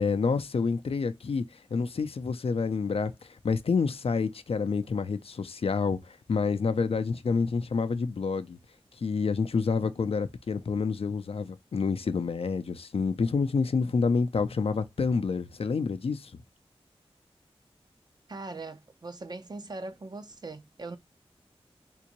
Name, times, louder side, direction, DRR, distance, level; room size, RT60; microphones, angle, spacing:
voice 1, 0.0-1.4 1.7-8.6 9.0-16.3, left 5 dB, 70° left, 0.4 m, -28 dB
voice 2, 18.3-21.0, right 3 dB, 40° right, 0.5 m, -40 dB
3.7 x 2.6 x 2.9 m
wide cardioid pair, 85°, 10 cm